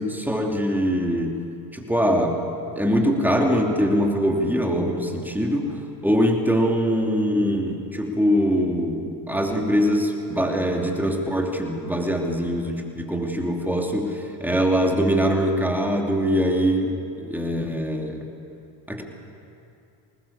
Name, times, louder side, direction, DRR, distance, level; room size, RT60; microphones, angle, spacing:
voice 1, 0.0-1.4 1.7-2.4 2.7-18.3 18.9-19.0, equal, 5° right, 1 dB, 3.0 m, -23 dB
21.0 x 19.5 x 7.2 m, 2.7 s
supercardioid pair, 80°, 50 cm